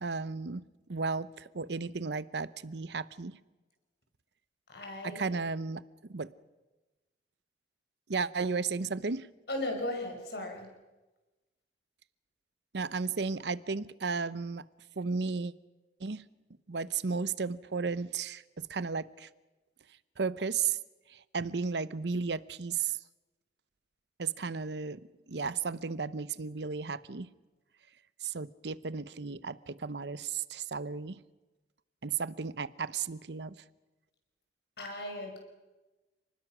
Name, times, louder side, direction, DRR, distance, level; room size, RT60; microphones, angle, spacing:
voice 1, 0.0-3.4 5.0-5.8 6.1-6.3 8.1-9.3 12.7-14.6 15.0-15.5 16.0-16.2 16.7-19.3 20.2-20.8 21.1-23.0 24.2-25.0 25.3-27.3 28.2-31.2 32.0-33.6, right 5 dB, 70° right, 16 dB, 0.7 m, -34 dB
voice 2, 4.7-5.2 9.5-10.7 34.8-35.4, left 1 dB, 65° left, 3 dB, 5.6 m, -36 dB
29.5 x 20.0 x 6.1 m, 1.2 s
head